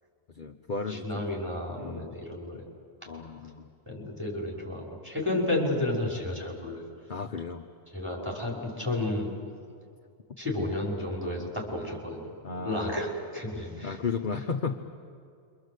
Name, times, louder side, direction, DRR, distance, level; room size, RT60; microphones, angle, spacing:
voice 1, 0.3-1.2 1.8-2.1 3.1-3.7 7.1-7.7 12.4-13.0 13.8-14.8, left 4 dB, 45° left, 4 dB, 1.0 m, -34 dB
voice 2, 0.9-2.6 3.9-6.8 7.9-9.3 10.4-12.2 12.6-14.0, left 1 dB, 10° right, -3 dB, 5.7 m, -32 dB
27.5 x 24.5 x 8.1 m, 2.3 s
omnidirectional pair, 1.2 m